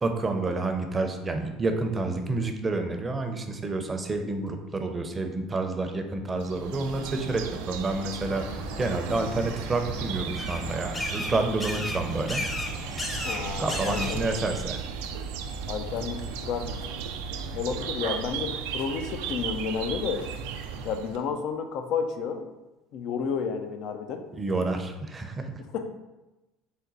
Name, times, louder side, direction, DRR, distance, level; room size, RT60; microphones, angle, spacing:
voice 1, 0.0-8.5 8.8-12.4 13.6-14.8 24.3-25.5, right 3 dB, 25° right, 5 dB, 0.5 m, -29 dB
sound 1, 6.4-21.2, right 6 dB, 80° right, 0.3 m, -35 dB
sound 2, 8.3-14.4, left 1 dB, 20° left, 0.7 m, -35 dB
voice 2, 13.2-14.3 15.7-16.7 17.5-20.3 20.8-22.5 22.9-24.2 25.7-25.9, left 6 dB, 65° left, 6 dB, 0.4 m, -31 dB
4.1 x 2.1 x 3.9 m, 1.0 s
hypercardioid pair, 75°, 0 cm